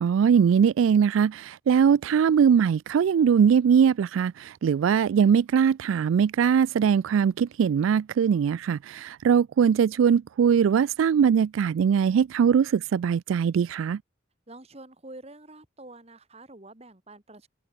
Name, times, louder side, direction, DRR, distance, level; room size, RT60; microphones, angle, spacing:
voice 1, 0.0-14.0, right 7 dB, 90° right, 0.3 m, -21 dB
voice 2, 14.5-17.5, right 2 dB, 35° right, 2.9 m, -47 dB
head